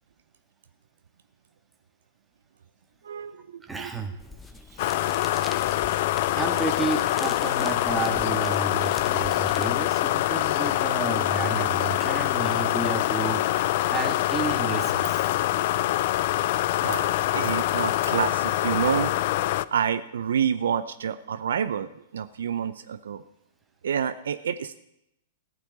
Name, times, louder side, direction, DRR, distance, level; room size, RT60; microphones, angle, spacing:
voice 1, 3.0-3.9 15.8-16.1 16.8-19.1 19.7-23.2 23.8-24.8, right 8 dB, 70° right, 12 dB, 0.6 m, -28 dB
voice 2, 3.6-4.1 4.7-5.0 6.4-15.3, right 4 dB, 10° right, 5 dB, 1.8 m, -32 dB
sound 1, 4.2-9.7, left 3 dB, 10° left, 0.9 m, -44 dB
sound 2, 4.8-19.7, left 15 dB, 50° left, 0.4 m, -25 dB
15.0 x 5.8 x 9.4 m, 0.83 s
figure-of-eight pair, 105°, 0 cm